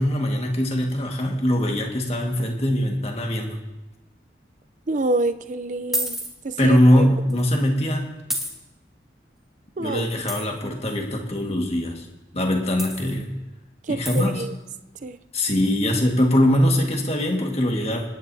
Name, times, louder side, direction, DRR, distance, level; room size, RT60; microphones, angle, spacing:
voice 1, 0.0-3.6 6.6-8.2 9.8-12.1 12.3-13.3 13.9-14.4 15.3-18.0, left 1 dB, 35° left, 1 dB, 1.6 m, -22 dB
voice 2, 4.9-6.2 6.4-7.1 9.8-10.1 13.9-14.5 15.0-15.2, right 2 dB, 45° right, 10 dB, 0.5 m, -27 dB
sound 1, 5.9-6.3 7.3-7.4 8.3-8.5 10.3-10.5 12.8-13.2 14.0-14.3, right 1 dB, ahead, 1.6 m, -28 dB
26.0 x 10.0 x 2.7 m, 1.1 s
head